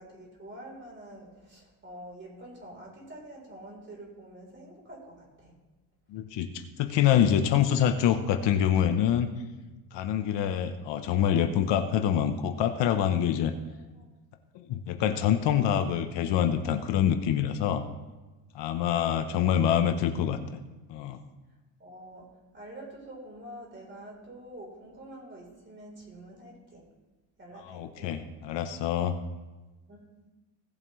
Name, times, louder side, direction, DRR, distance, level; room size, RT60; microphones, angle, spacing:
voice 1, 0.0-5.5 14.0-14.1 19.1-19.3 19.6-19.7 21.8-22.3 22.5-26.8 27.4-28.1 29.9-30.3, right 1 dB, 25° right, -2 dB, 4.0 m, -46 dB
voice 2, 6.1-9.3 9.9-13.5 14.5-17.8 18.5-20.6 20.9-21.2 27.5-29.2, left 9 dB, 60° left, 7 dB, 1.0 m, -26 dB
17.5 x 7.3 x 3.2 m, 1.2 s
cardioid pair, 130°, 48 cm